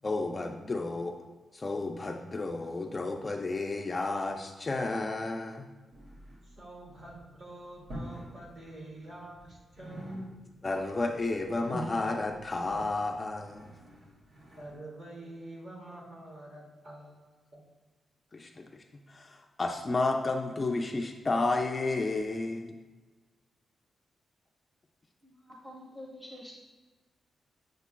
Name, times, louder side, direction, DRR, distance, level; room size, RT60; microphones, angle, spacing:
voice 1, 0.0-1.1 1.5-5.7 10.6-13.7 18.3-22.8, left 3 dB, 25° left, 3 dB, 0.4 m, -32 dB
sound 1, 5.9-6.6 6.9-7.2 7.8-8.3 8.6-9.5 9.7-10.7 11.0-14.7, right 1 dB, 70° right, 2.1 m, -44 dB
voice 2, 6.4-10.1 14.6-17.6, right 1 dB, 50° right, -2 dB, 2.1 m, -47 dB
voice 3, 25.2-26.5, left 1 dB, 5° right, -3 dB, 0.8 m, -47 dB
8.1 x 6.4 x 2.2 m, 1.3 s
wide cardioid pair, 175°, 0 cm